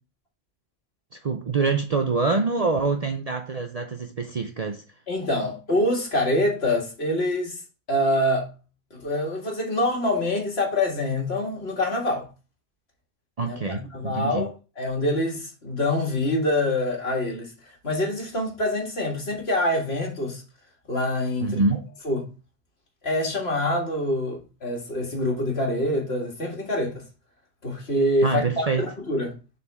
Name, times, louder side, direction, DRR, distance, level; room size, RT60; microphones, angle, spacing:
voice 1, 1.1-4.8 13.4-14.5 21.4-21.9 28.2-28.8, right 4 dB, 45° right, 0.6 m, -25 dB
voice 2, 5.1-7.6 7.9-8.5 8.9-12.3 13.4-17.5 17.8-20.4 20.9-21.6 22.0-22.3 23.0-27.0 27.6-29.3, left 1 dB, 60° left, 2.1 m, -25 dB
7.1 x 4.2 x 3.4 m
omnidirectional pair, 1.2 m